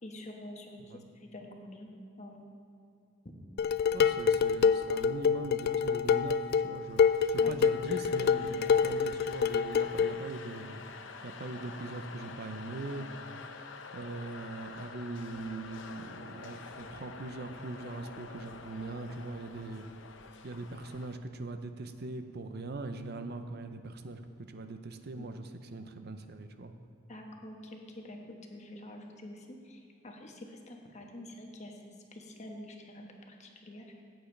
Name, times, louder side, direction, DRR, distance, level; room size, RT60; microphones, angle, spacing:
voice 1, 0.0-1.9 2.2-2.5 7.4-7.5 25.2-25.3 27.1-28.2 28.5-31.8 32.1-33.8, left 1 dB, 35° left, 2 dB, 1.2 m, -47 dB
Dishes pots and pans, 3.6-10.2, left 6 dB, 55° left, 0.3 m, -27 dB
voice 2, 3.9-13.0 13.5-13.6 13.9-19.9 20.4-24.2 24.5-26.7, right 2 dB, 55° right, 8 dB, 0.6 m, -41 dB
sound 1, 6.9-21.2, left 4 dB, 75° left, 0.7 m, -48 dB
15.0 x 8.9 x 3.3 m, 2.5 s
head